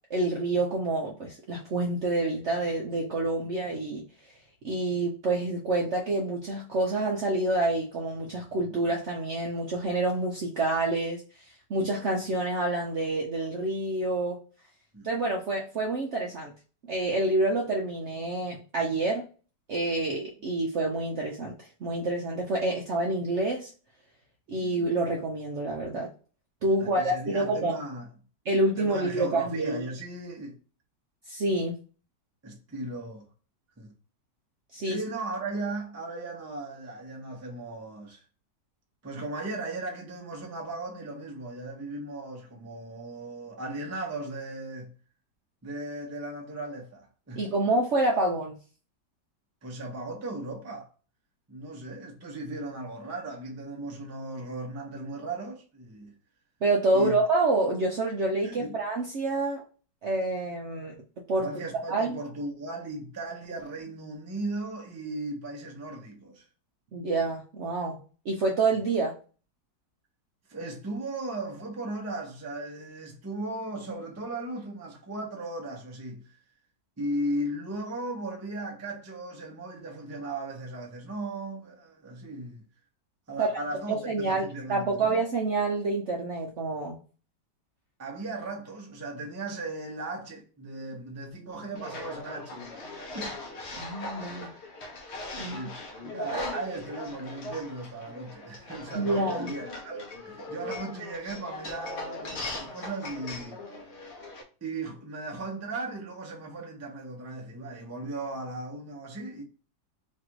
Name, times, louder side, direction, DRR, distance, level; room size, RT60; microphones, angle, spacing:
voice 1, 0.1-4.0 4.6-11.2 11.7-14.4 15.0-16.5 16.9-19.2 19.7-23.7 24.5-26.1 26.6-27.8 28.5-29.8 31.3-31.8 34.7-35.0 47.4-48.5 56.6-59.6 60.0-60.9 61.3-61.5 61.9-62.2 66.9-68.0 68.2-69.2 83.4-83.5 83.9-87.0 93.8-94.5 95.4-95.7 98.9-99.5, right 2 dB, 60° right, 0.7 m, -27 dB
voice 2, 26.8-28.1 28.8-30.6 32.4-33.3 33.8-33.9 34.8-38.2 39.0-44.9 45.6-47.4 49.6-50.9 51.5-56.1 56.9-57.2 58.4-58.8 61.4-66.5 68.7-68.9 70.5-76.4 77.0-82.6 83.3-85.2 88.0-93.4 94.5-94.6 95.5-103.6 104.6-109.4, right 2 dB, 15° right, 0.5 m, -37 dB
sound 1, 91.7-104.4, left 2 dB, 55° left, 0.8 m, -39 dB
3.3 x 2.5 x 4.5 m
omnidirectional pair, 1.8 m